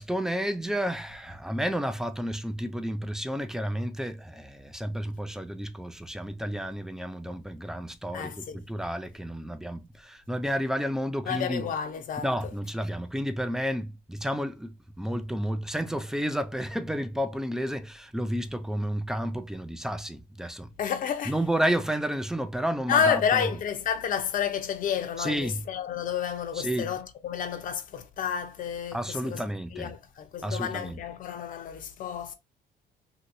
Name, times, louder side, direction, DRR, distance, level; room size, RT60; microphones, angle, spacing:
voice 1, 0.0-11.7 12.2-20.7 21.3-23.5 25.2-25.6 26.6-26.9 28.9-29.9 30.4-31.0, equal, 5° right, 0.4 m, -31 dB
voice 2, 8.1-8.6 11.3-12.3 20.8-21.3 22.9-29.4 29.7-32.3, left 8 dB, 55° left, 0.7 m, -30 dB
2.8 x 2.8 x 2.6 m
cardioid pair, 110°, 17 cm